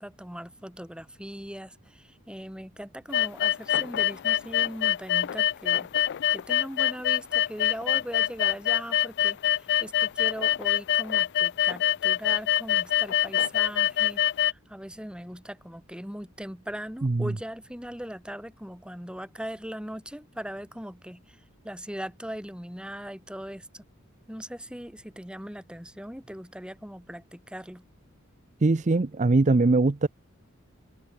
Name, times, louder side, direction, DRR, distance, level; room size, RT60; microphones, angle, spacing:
voice 1, 0.0-5.9 6.3-23.8 24.3-27.9, equal, 5° right, 5.1 m, -40 dB
sound 1, 3.1-14.5, left 12 dB, 55° left, 0.4 m, -24 dB
voice 2, 28.6-30.1, right 3 dB, 35° right, 0.6 m, -21 dB
head